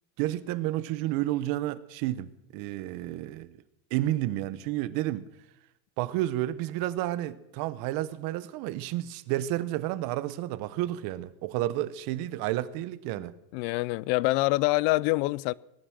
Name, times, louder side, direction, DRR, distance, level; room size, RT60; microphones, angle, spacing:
voice 1, 0.2-3.6 3.9-5.2 6.0-13.3, right 15 dB, 65° right, 1.1 m, -31 dB
voice 2, 13.5-15.5, left 21 dB, 75° left, 0.6 m, -25 dB
20.0 x 10.0 x 6.4 m
cardioid pair, 135°, 37 cm